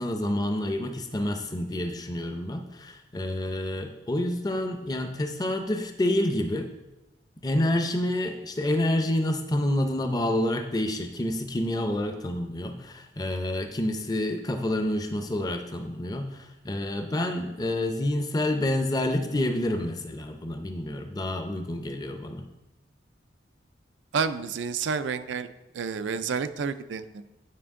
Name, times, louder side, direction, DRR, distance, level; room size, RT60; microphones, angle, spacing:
voice 1, 0.0-6.7 7.4-22.5, left 1 dB, 20° left, 6 dB, 0.6 m, -28 dB
voice 2, 24.1-25.5 25.7-27.3, right 5 dB, 90° right, 11 dB, 0.4 m, -30 dB
9.5 x 5.1 x 3.6 m, 0.98 s
head